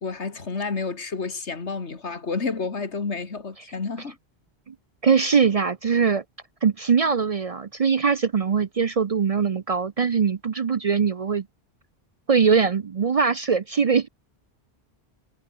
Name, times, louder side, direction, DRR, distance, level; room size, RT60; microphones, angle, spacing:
voice 1, 0.0-4.2, left 4 dB, 85° left, 2.4 m, -30 dB
voice 2, 5.0-6.2 6.6-11.5 12.3-14.1, right 6 dB, 45° right, 0.5 m, -21 dB
omnidirectional pair, 1.1 m